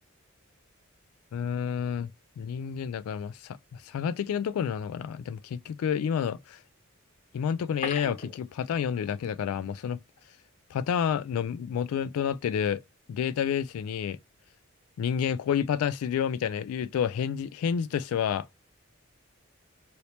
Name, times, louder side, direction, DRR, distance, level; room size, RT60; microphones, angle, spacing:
voice 1, 1.3-2.1 2.4-6.6 7.3-10.0 10.7-12.8 13.1-14.2 15.0-18.5, left 8 dB, 85° left, 0.3 m, -29 dB
sound 1, 7.6-9.3 9.5-9.6 10.1-10.2, left 3 dB, 35° left, 1.1 m, -39 dB
2.8 x 2.8 x 3.2 m
head